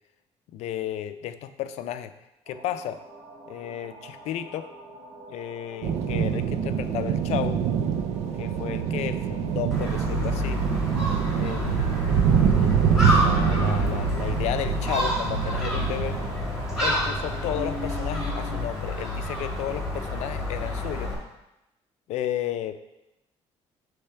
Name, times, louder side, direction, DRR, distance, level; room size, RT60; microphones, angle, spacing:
voice 1, 0.5-2.1 2.5-3.0 3.5-4.7 5.3-7.6 8.4-10.6 11.4-16.2 16.8-21.1 22.1-22.7, left 11 dB, 75° left, 11 dB, 0.4 m, -33 dB
sound 1, 2.4-18.6, right 1 dB, 55° right, 1.4 m, -44 dB
sound 2, 5.8-16.3, right 8 dB, 75° right, 0.5 m, -25 dB
Gull seagull, 9.7-21.1, left 1 dB, 5° right, 1.8 m, -29 dB
6.8 x 3.4 x 5.6 m, 0.93 s
cardioid pair, 155°, 11 cm